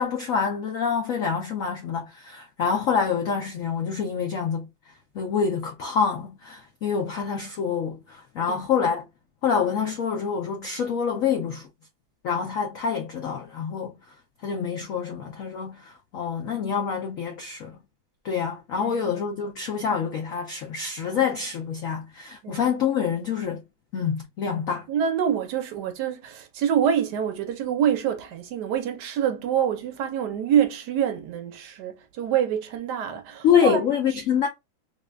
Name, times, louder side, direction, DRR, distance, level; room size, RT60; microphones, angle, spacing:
voice 1, 0.0-4.7 5.1-9.1 9.4-11.7 12.2-13.9 14.4-17.8 18.2-23.6 23.9-24.9 33.4-34.5, left 7 dB, 70° left, 0.7 m, -26 dB
voice 2, 18.8-19.1 22.4-22.7 24.9-33.8, right 9 dB, 70° right, 1.1 m, -26 dB
3.7 x 2.3 x 3.3 m
omnidirectional pair, 2.1 m